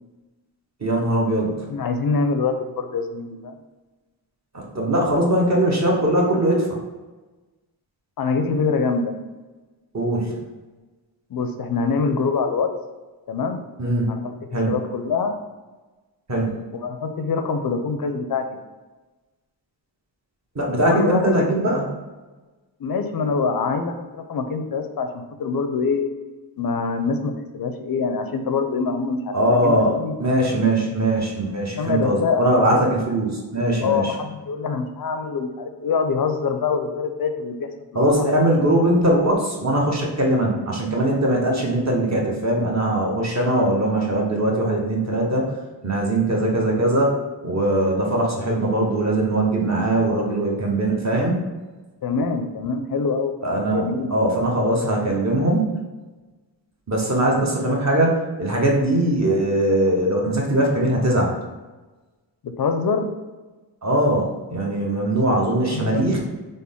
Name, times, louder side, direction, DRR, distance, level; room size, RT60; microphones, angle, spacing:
voice 1, 0.8-1.5 4.5-6.8 9.9-10.3 13.8-14.1 14.5-14.7 16.3-16.5 20.5-21.9 29.3-34.1 37.9-45.5 45.8-47.2 47.4-51.4 53.4-55.7 56.9-61.3 63.8-66.2, right 1 dB, 35° right, -2 dB, 1.0 m, -21 dB
voice 2, 1.7-3.5 8.2-9.1 11.3-12.7 13.3-13.6 14.1-15.4 16.7-18.6 20.7-21.5 22.8-26.1 26.6-30.6 31.8-32.8 33.8-38.4 52.0-53.3 53.7-54.2 62.4-63.1 65.4-66.1, left 5 dB, 50° left, 7 dB, 0.5 m, -25 dB
3.7 x 2.1 x 3.5 m, 1.2 s
cardioid pair, 45°, 45 cm